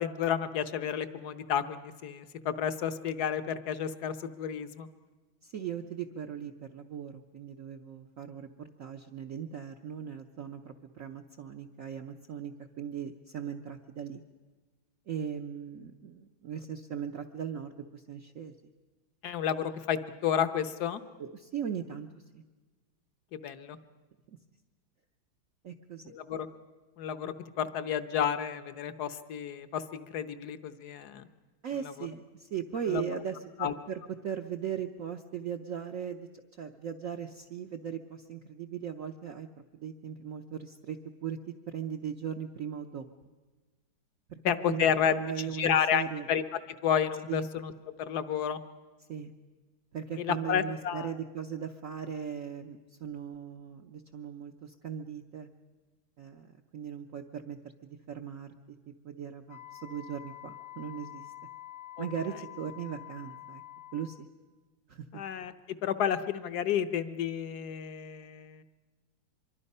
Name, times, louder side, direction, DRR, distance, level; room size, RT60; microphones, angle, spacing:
voice 1, 0.0-4.9 19.2-21.0 23.3-23.8 26.1-26.5 27.0-31.2 32.9-33.0 33.6-33.7 44.4-46.4 46.8-47.7 48.0-48.6 50.2-51.1 62.0-62.1 65.1-65.5 65.8-68.6, left 8 dB, 60° left, 11 dB, 1.2 m, -31 dB
voice 2, 5.4-14.2 15.1-18.5 21.2-22.1 22.3-22.4 24.3-24.4 25.6-26.2 31.6-36.3 36.6-39.5 39.7-43.1 44.3-44.4 44.6-44.8 45.1-46.3 47.3-47.5 49.1-49.3 49.9-55.5 56.2-58.5 59.0-61.2 62.0-63.6 63.9-64.3 64.9-65.0, right 8 dB, 55° right, 3 dB, 0.9 m, -38 dB
Wind instrument woodwind instrument, 59.5-64.3, left 14 dB, 15° left, 0.7 m, -47 dB
25.0 x 23.0 x 5.5 m, 1.3 s
omnidirectional pair, 2.2 m